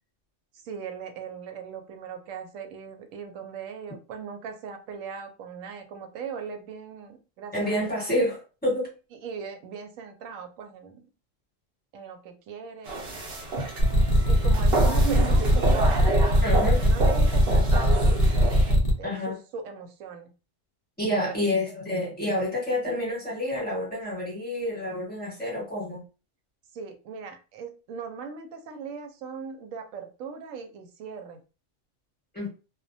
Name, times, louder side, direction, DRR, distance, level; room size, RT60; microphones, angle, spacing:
voice 1, 0.6-7.8 9.2-11.1 11.9-13.3 14.3-17.9 18.6-20.3 21.1-21.4 26.7-31.4, right 6 dB, 90° right, 6 dB, 1.0 m, -39 dB
voice 2, 7.5-8.9 16.4-16.8 17.5-17.6 19.0-19.4 21.0-26.0 32.3-32.5, left 1 dB, 10° left, -5 dB, 1.1 m, -28 dB
sound 1, 12.9-18.7, right 3 dB, 60° right, 0.8 m, -30 dB
sound 2, 13.8-18.9, equal, 45° left, 0.5 m, -20 dB
2.2 x 2.1 x 2.6 m, 0.33 s
omnidirectional pair, 1.3 m